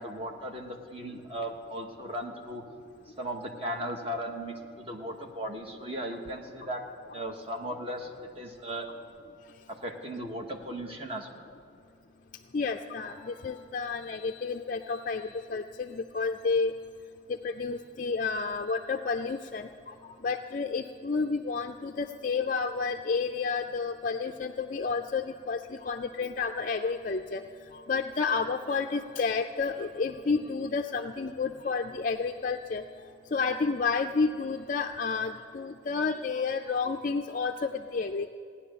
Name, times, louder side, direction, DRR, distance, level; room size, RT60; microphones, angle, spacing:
voice 1, 0.0-2.6 3.1-6.8 7.1-8.9 9.7-11.5, right 1 dB, 30° right, 2 dB, 1.3 m, -37 dB
voice 2, 12.5-15.2 15.5-16.7 17.4-19.7 20.2-25.6 25.8-27.4 27.9-32.8 33.3-38.3, left 4 dB, 40° left, 5 dB, 0.4 m, -30 dB
16.5 x 10.0 x 6.8 m, 2.5 s
head